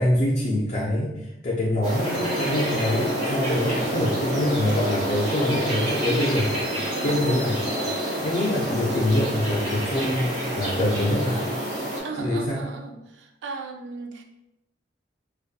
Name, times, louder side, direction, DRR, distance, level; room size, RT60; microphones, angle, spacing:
voice 1, 0.0-6.5 7.0-7.6 8.2-11.5 12.2-12.6, left 1 dB, 40° left, -5 dB, 0.4 m, -25 dB
sound 1, 1.8-12.0, equal, 35° right, 1.0 m, -28 dB
voice 2, 12.0-14.2, right 4 dB, 80° right, 4 dB, 0.4 m, -36 dB
2.7 x 2.2 x 2.3 m, 0.90 s
head